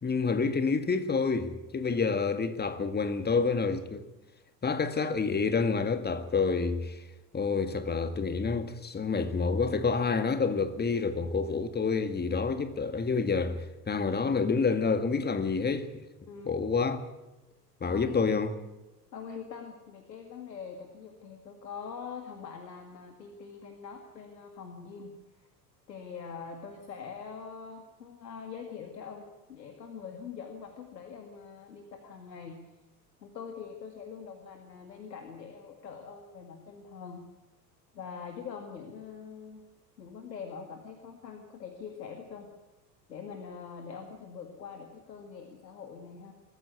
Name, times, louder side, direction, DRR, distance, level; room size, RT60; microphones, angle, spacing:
voice 1, 0.0-4.0 4.6-7.0 7.3-16.0 16.5-17.0 17.8-18.5, left 4 dB, 20° left, 1.9 m, -28 dB
voice 2, 16.3-16.7 17.9-18.2 19.1-25.5 25.9-32.6 33.2-37.2 37.9-39.6 40.0-42.5 43.1-46.3, left 6 dB, 80° left, 2.2 m, -44 dB
22.5 x 14.0 x 9.5 m
figure-of-eight pair, 70°, 49 cm